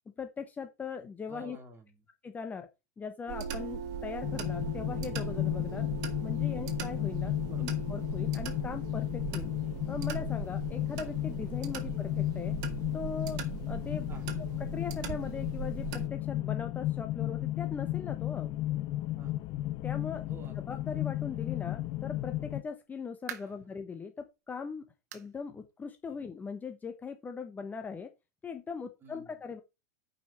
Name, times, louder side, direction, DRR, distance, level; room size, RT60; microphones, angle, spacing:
voice 1, 0.2-1.6 2.2-2.7 3.0-5.9 6.2-7.4 7.6-9.5 9.9-12.5 12.9-13.4 13.7-14.1 14.6-18.5 19.8-20.2 20.6-28.1 28.4-29.6, left 5 dB, 20° left, 1.2 m, -40 dB
voice 2, 1.3-2.0 7.4-7.7 14.1-14.4 19.2-19.4 20.3-20.8 23.4-23.5 26.1-26.2 29.0-29.4, right 4 dB, 25° right, 3.2 m, -51 dB
sound 1, 3.3-16.1, right 7 dB, 50° right, 1.9 m, -40 dB
sound 2, 4.2-22.6, left 15 dB, 45° left, 0.8 m, -34 dB
sound 3, 22.8-23.7 24.2-24.3 25.1-25.4 25.7-25.8 26.3-26.4 27.5-27.6, right 10 dB, 70° right, 1.3 m, -45 dB
8.9 x 5.6 x 4.4 m
hypercardioid pair, 110°, 9 cm